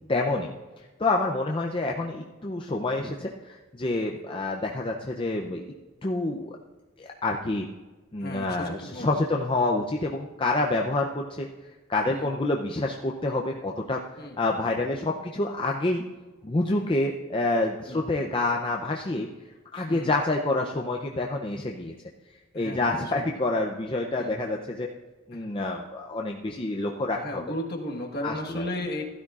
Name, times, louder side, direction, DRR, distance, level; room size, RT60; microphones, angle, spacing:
voice 1, 0.1-0.5 0.8-5.6 6.0-6.6 7.0-7.7 8.1-11.5 11.9-14.0 14.4-16.0 16.4-19.3 19.7-21.9 22.5-24.9 25.3-27.4 28.2-28.6, left 2 dB, 25° left, 0 dB, 0.5 m, -27 dB
voice 2, 8.2-9.4 12.1-12.3 14.2-14.4 17.9-18.0 19.9-20.1 22.5-23.3 24.2-24.4 25.3-25.5 27.1-29.0, left 1 dB, 45° left, 0 dB, 1.4 m, -35 dB
16.0 x 12.0 x 2.4 m, 1.2 s
head